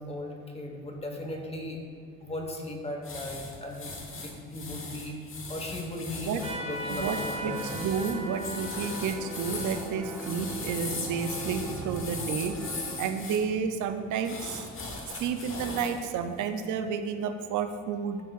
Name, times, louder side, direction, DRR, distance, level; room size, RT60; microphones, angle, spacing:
voice 1, 0.0-1.8 2.2-3.9 4.2-7.6, left 1 dB, 20° left, 2 dB, 1.1 m, -37 dB
sound 1, 3.0-13.4 14.2-16.0 16.4-16.7, left 3 dB, 45° left, 1.2 m, -39 dB
sound 2, 6.4-13.0, right 1 dB, 5° left, 1.4 m, -42 dB
Trumpet, 6.4-11.5, right 1 dB, 20° right, 1.4 m, -40 dB
voice 2, 6.9-12.6 13.0-14.7 15.1-18.2, right 6 dB, 80° right, 8 dB, 0.6 m, -31 dB
11.5 x 4.5 x 2.4 m, 2.2 s
cardioid pair, 90°, 30 cm